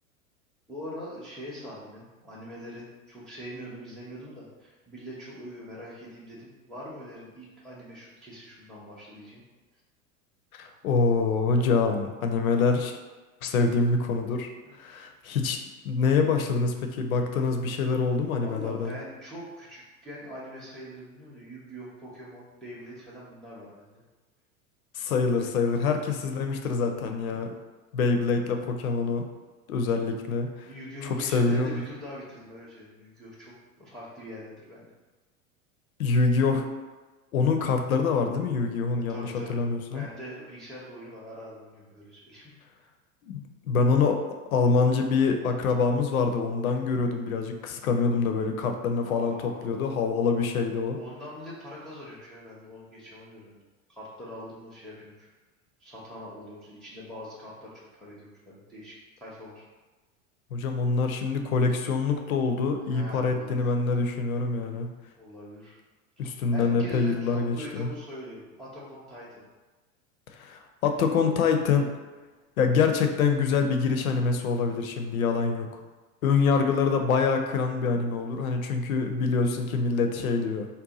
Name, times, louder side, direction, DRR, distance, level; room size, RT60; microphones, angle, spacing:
voice 1, 0.7-9.4 14.6-14.7 18.4-24.0 29.4-29.5 30.7-34.9 39.1-39.6 39.9-42.9 49.0-49.7 50.9-53.6 53.9-55.3 55.8-59.6 62.9-63.7 65.2-65.8 66.5-69.4 75.7-75.8, equal, ahead, -8 dB, 0.5 m, -43 dB
voice 2, 10.5-13.0 13.4-15.6 15.8-18.9 24.9-27.6 27.9-29.2 29.7-30.7 31.1-31.8 36.0-36.6 37.3-40.1 43.2-44.2 44.5-51.0 60.5-64.9 66.2-67.9 70.3-71.9 72.6-75.7 76.2-80.7, left 4 dB, 80° left, 5 dB, 0.5 m, -25 dB
2.7 x 2.2 x 3.8 m, 1.3 s
figure-of-eight pair, 85°, 42 cm